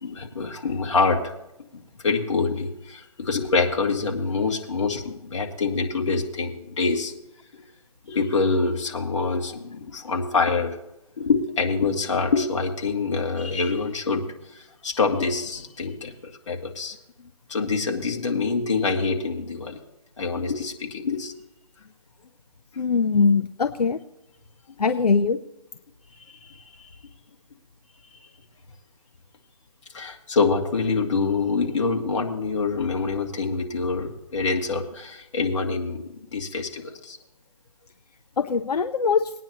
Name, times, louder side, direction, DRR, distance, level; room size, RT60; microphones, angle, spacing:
voice 1, 0.0-1.3 1.7-7.2 7.5-7.6 8.1-10.8 11.2-17.0 17.5-19.8 20.2-21.3 26.5-26.6 29.9-36.0 36.3-37.2, left 4 dB, 50° left, 1 dB, 2.1 m, -25 dB
voice 2, 22.8-24.0 24.8-25.4 38.4-39.3, left 5 dB, 85° left, 8 dB, 0.7 m, -21 dB
21.0 x 9.6 x 2.9 m, 0.87 s
hypercardioid pair, 165°, 20 cm